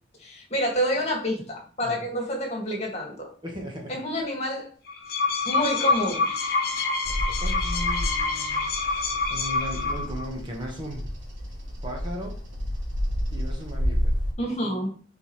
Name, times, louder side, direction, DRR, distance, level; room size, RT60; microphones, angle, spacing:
voice 1, 0.2-3.3 3.9-4.7 5.5-6.2 14.4-14.9, equal, 35° left, 0 dB, 2.1 m, -28 dB
voice 2, 3.4-4.0 7.4-8.6 9.3-11.2 11.8-12.4 13.3-14.1, equal, 25° right, -1 dB, 1.5 m, -36 dB
sound 1, 4.9-10.3, left 4 dB, 55° left, 1.2 m, -26 dB
Bird vocalization bird call bird song, 7.0-14.3, equal, 90° right, 2.2 m, -30 dB
9.9 x 3.9 x 3.3 m, 0.42 s
head